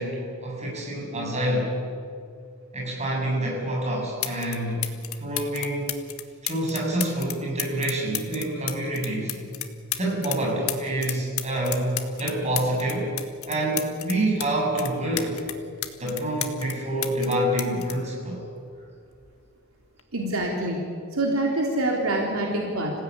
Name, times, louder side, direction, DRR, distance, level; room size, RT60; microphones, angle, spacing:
voice 1, 0.0-1.7 2.7-4.9 5.2-5.9 6.4-9.3 10.0-13.1 13.5-15.4 16.0-18.4, right 1 dB, 30° right, -2 dB, 7.6 m, -27 dB
sound 1, 3.7-3.8 4.2-4.6 4.8-10.4 10.7-14.5 14.8-16.8 17.0-18.9 19.8-20.0, left 13 dB, 75° left, 1.6 m, -32 dB
voice 2, 20.1-20.8 21.1-22.9, right 1 dB, 70° right, -1 dB, 3.7 m, -25 dB
26.5 x 16.5 x 9.7 m, 2.3 s
head